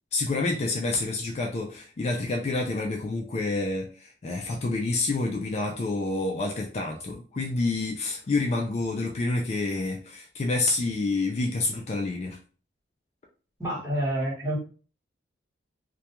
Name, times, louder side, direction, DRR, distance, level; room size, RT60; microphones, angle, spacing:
voice 1, 0.1-12.4, left 3 dB, 35° left, 1 dB, 0.3 m, -28 dB
voice 2, 13.6-14.6, right 1 dB, 15° right, -6 dB, 1.0 m, -28 dB
2.3 x 2.2 x 2.8 m, 0.39 s
head